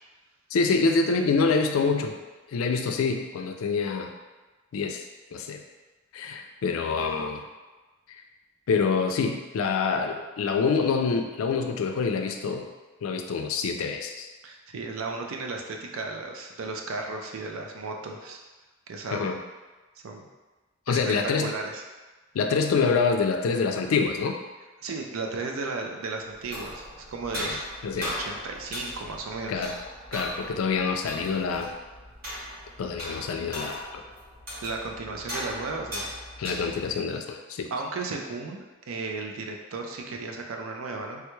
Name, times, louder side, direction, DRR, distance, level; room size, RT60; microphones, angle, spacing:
voice 1, 0.5-2.2 2.5-4.1 4.7-5.0 5.3-5.6 6.1-7.4 8.7-12.7 13.0-14.3 19.1-19.4 20.9-21.5 22.3-24.4 27.3-27.6 27.8-28.1 29.5-29.7 30.1-31.7 32.8-34.0 36.4-37.7, left 4 dB, 90° left, 4 dB, 0.4 m, -26 dB
voice 2, 14.4-18.4 18.9-19.3 20.0-20.3 20.9-21.8 24.8-27.6 28.0-29.6 34.6-36.1 37.7-41.2, right 3 dB, 80° right, 2 dB, 0.4 m, -35 dB
sound 1, 26.3-37.0, equal, 45° right, 0.9 m, -38 dB
3.4 x 2.2 x 3.0 m, 1.2 s
head